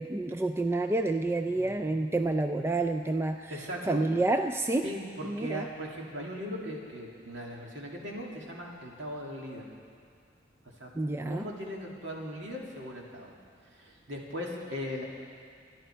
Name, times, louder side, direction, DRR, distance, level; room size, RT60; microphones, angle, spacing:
voice 1, 0.0-3.5 3.9-4.9 5.2-5.7 10.9-11.4, right 2 dB, 15° right, 6 dB, 0.3 m, -29 dB
voice 2, 3.5-4.0 4.8-9.6 10.8-10.9 11.3-13.3 13.7-15.0, equal, 65° right, -2 dB, 2.6 m, -38 dB
27.5 x 11.5 x 4.5 m, 2.3 s
head